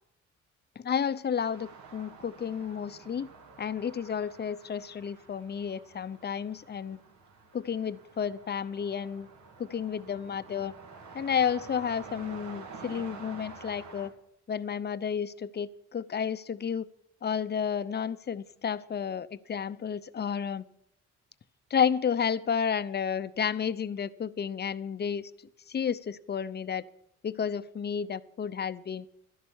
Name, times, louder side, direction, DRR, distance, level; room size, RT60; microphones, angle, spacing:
voice 1, 0.8-3.3 3.6-7.0 7.5-9.3 9.6-10.7 11.1-14.1 14.5-16.9 17.2-20.6 21.7-25.3 25.7-26.9 27.2-29.1, left 7 dB, 35° left, 15 dB, 0.7 m, -31 dB
sound 1, 1.4-14.1, right 5 dB, 70° right, 2.2 m, -49 dB
12.5 x 11.0 x 7.2 m, 0.75 s
cardioid pair, 90°, 30 cm